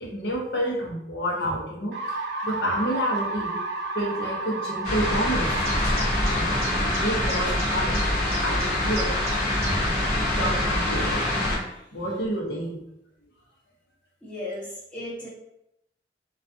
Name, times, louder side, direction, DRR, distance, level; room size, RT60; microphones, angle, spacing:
voice 1, 0.0-3.6 3.9-5.7 6.2-9.4 10.2-11.2 11.9-12.8, equal, 70° left, -2 dB, 0.7 m, -29 dB
sound 1, 1.9-9.8, right 3 dB, 75° right, 0.6 m, -34 dB
sound 2, 4.8-11.6, left 1 dB, 40° left, 0.9 m, -25 dB
sound 3, 5.4-10.0 10.3-10.4 11.0-11.1, right 2 dB, 35° right, 0.6 m, -38 dB
voice 2, 14.2-15.3, left 1 dB, 5° left, -10 dB, 0.7 m, -36 dB
2.3 x 2.3 x 2.5 m, 0.83 s
head